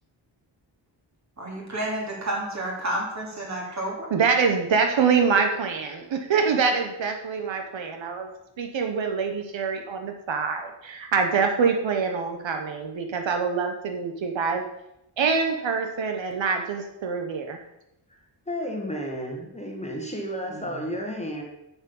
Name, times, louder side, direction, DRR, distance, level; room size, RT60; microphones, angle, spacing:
voice 1, 1.4-4.1 20.5-20.6, right 1 dB, 35° right, -2 dB, 3.0 m, -30 dB
voice 2, 4.1-8.3 8.6-14.6 15.2-17.6, right 5 dB, 75° right, 4 dB, 1.1 m, -25 dB
voice 3, 18.5-21.4, equal, 15° left, 0 dB, 1.4 m, -32 dB
7.4 x 7.3 x 7.0 m, 0.86 s
wide cardioid pair, 175°, 47 cm